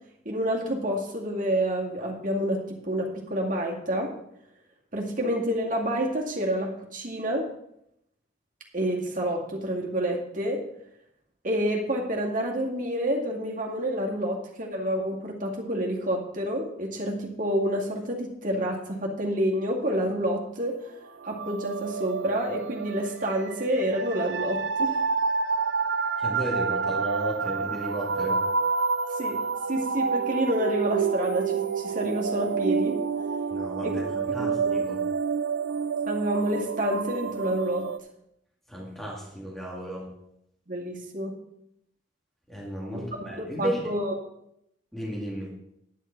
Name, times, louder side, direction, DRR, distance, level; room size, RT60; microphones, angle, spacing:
voice 1, 0.3-4.1 4.9-7.5 8.7-10.6 11.4-20.9 21.2-25.0 29.1-29.4 29.7-33.0 33.8-34.0 34.4-34.9 36.1-37.8 40.7-41.3 42.9-44.1, equal, 45° right, -1 dB, 2.2 m, -28 dB
sound 1, 21.2-38.0, right 5 dB, 70° right, 0.4 m, -28 dB
voice 2, 26.2-28.5 33.5-35.1 38.7-40.1 42.5-43.9 44.9-45.5, right 1 dB, ahead, -5 dB, 2.1 m, -34 dB
10.5 x 9.9 x 4.5 m, 0.78 s
head